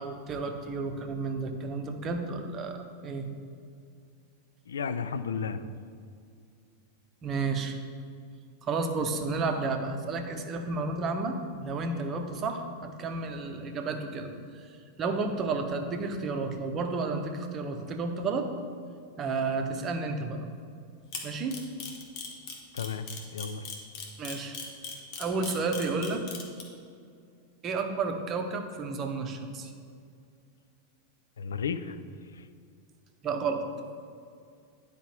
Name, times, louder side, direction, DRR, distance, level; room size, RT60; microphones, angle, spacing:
voice 1, 0.0-3.3 7.2-7.8 8.6-14.7 15.0-18.5 19.2-20.4 21.2-21.6 24.2-24.6 25.2-26.2 27.6-29.7 33.2-33.6, right 4 dB, 30° right, 5 dB, 0.8 m, -31 dB
voice 2, 4.7-5.6 22.7-23.0 23.3-23.6 31.4-32.0, left 6 dB, 65° left, 11 dB, 0.3 m, -32 dB
Camera, 21.1-26.6, left 5 dB, 40° left, 1.2 m, -38 dB
10.0 x 4.9 x 3.3 m, 2.3 s
figure-of-eight pair, 90°, 0 cm